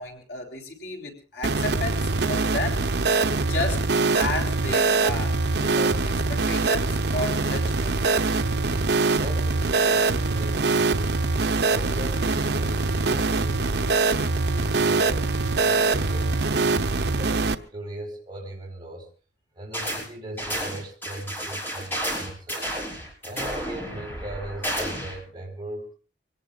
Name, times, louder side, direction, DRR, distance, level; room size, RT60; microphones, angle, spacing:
voice 1, 0.0-2.9 3.5-3.9 4.1-8.0, left 2 dB, 65° left, 1 dB, 3.6 m, -33 dB
sound 1, 1.4-17.5, right 3 dB, 65° right, 0.8 m, -23 dB
voice 2, 9.2-11.1 11.7-14.0 14.4-15.3 15.6-19.1 19.5-22.7 23.2-25.9, right 1 dB, 25° right, -2 dB, 4.7 m, -39 dB
sound 2, 19.7-20.1 20.4-25.2, equal, 10° left, 5.8 m, -31 dB
24.5 x 18.5 x 2.5 m, 0.37 s
head